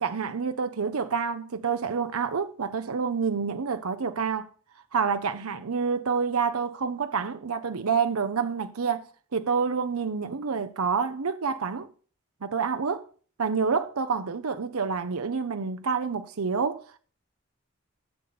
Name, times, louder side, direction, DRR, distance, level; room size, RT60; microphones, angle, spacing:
voice 1, 0.0-4.5 4.9-9.1 9.3-11.9 12.4-13.1 13.4-17.0, right 5 dB, 85° right, 0.7 m, -28 dB
12.0 x 6.8 x 4.1 m
head